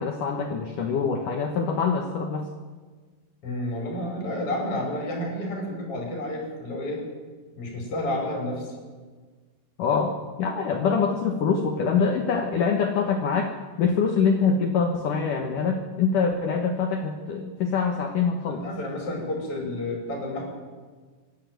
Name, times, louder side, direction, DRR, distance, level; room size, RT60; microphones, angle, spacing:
voice 1, 0.0-2.5 9.8-18.6, left 5 dB, 80° left, 4 dB, 1.8 m, -24 dB
voice 2, 3.4-7.0 7.6-8.8 18.5-20.5, left 1 dB, 30° left, 0 dB, 5.7 m, -30 dB
25.5 x 11.5 x 9.3 m, 1.4 s
omnidirectional pair, 5.8 m